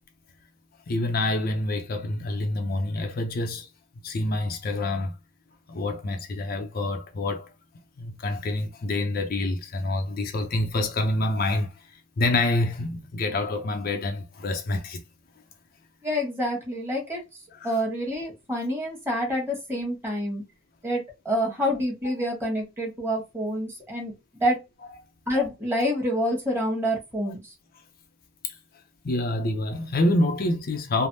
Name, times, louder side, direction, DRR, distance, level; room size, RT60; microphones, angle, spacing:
voice 1, 0.9-3.7 4.0-5.1 5.7-7.5 8.0-11.7 12.2-15.0 17.5-17.7 28.4-28.5 29.0-31.1, left 2 dB, 50° left, 0.5 m, -27 dB
voice 2, 16.0-17.2 17.6-20.4 20.8-24.1 24.4-24.6 25.3-27.4, equal, 10° right, 1.2 m, -27 dB
3.3 x 2.0 x 2.6 m
head